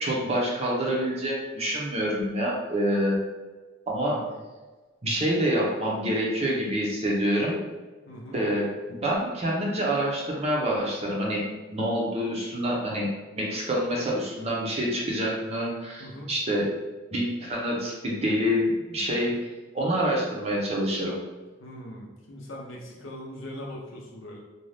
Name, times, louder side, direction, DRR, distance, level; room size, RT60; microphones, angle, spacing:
voice 1, 0.0-3.2 3.9-4.2 5.0-7.6 8.3-11.4 11.7-16.7 17.1-21.2, equal, 30° right, -4 dB, 0.6 m, -27 dB
voice 2, 8.1-8.4 16.0-16.3 21.6-24.4, equal, 70° left, -1 dB, 0.6 m, -40 dB
2.6 x 2.2 x 3.3 m, 1.3 s
head